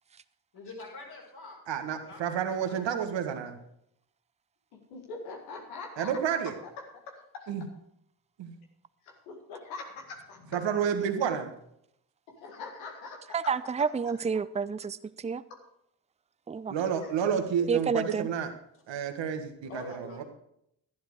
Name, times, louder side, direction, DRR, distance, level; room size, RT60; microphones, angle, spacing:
voice 1, 0.5-1.6 2.0-2.8 18.7-18.8 19.6-20.3, left 3 dB, 55° left, -2 dB, 5.5 m, -46 dB
voice 2, 1.7-3.6 6.0-6.5 7.5-7.6 8.4-8.5 10.5-11.5 16.7-18.5 18.9-20.2, right 8 dB, 70° right, 7 dB, 1.6 m, -30 dB
voice 3, 4.9-6.1 7.3-7.5 9.1-10.6 12.3-13.3 14.0-14.1 16.9-17.8, left 3 dB, 90° left, 2 dB, 2.0 m, -43 dB
voice 4, 13.3-15.4 16.5-16.7 17.7-18.3, right 5 dB, 15° right, 15 dB, 0.6 m, -29 dB
12.0 x 10.5 x 4.9 m, 0.74 s
hypercardioid pair, 40°, 46 cm